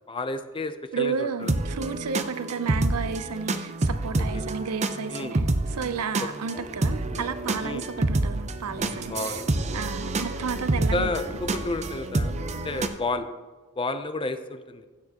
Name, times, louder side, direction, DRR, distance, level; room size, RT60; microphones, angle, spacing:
voice 1, 0.1-1.5 4.2-4.5 5.1-5.4 6.2-6.3 7.6-7.9 9.1-9.6 10.9-12.3 12.6-13.3 13.8-14.9, left 2 dB, 25° left, 10 dB, 0.5 m, -31 dB
voice 2, 0.9-5.5 5.7-9.4 9.7-11.1, right 5 dB, 80° right, 12 dB, 0.6 m, -32 dB
sound 1, 1.4-12.9, right 2 dB, 30° right, 0.6 m, -28 dB
sound 2, 6.5-12.1 13.0-13.1, left 1 dB, 5° left, 1.7 m, -42 dB
15.5 x 6.9 x 2.9 m, 1.3 s
head